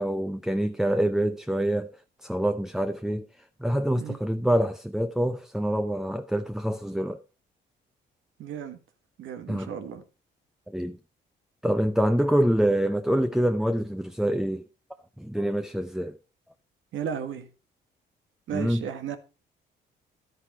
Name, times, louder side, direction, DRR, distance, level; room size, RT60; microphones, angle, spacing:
voice 1, 0.0-1.9 2.2-3.3 3.6-7.2 9.5-9.7 10.7-11.0 11.6-14.6 15.2-16.1 18.5-18.8, right 1 dB, ahead, 0.6 m, -26 dB
voice 2, 8.4-8.8 9.2-10.0 16.9-17.5 18.5-19.2, right 8 dB, 75° right, 1.8 m, -34 dB
11.5 x 9.8 x 4.3 m
cardioid pair, 90°, 20 cm